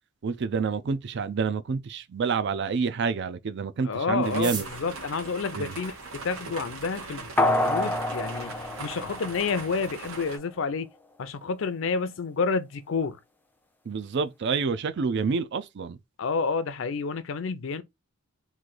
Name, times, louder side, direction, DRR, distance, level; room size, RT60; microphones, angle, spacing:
voice 1, 0.2-4.7 5.5-5.8 13.9-16.0, right 5 dB, 55° right, 0.4 m, -28 dB
voice 2, 3.8-10.9 11.2-13.2 16.2-17.8, left 4 dB, 65° left, 0.5 m, -30 dB
sound 1, 4.2-6.5 7.3-7.4 7.6-7.7 8.0-8.5 8.8-8.9 9.1-9.5 9.8-10.0 10.3-10.6, right 4 dB, 20° right, 0.8 m, -40 dB
sound 2, 4.2-10.4, right 3 dB, 90° right, 1.1 m, -40 dB
sound 3, 7.4-9.9 10.3-10.4, left 1 dB, 10° left, 0.4 m, -27 dB
3.2 x 2.5 x 3.7 m
head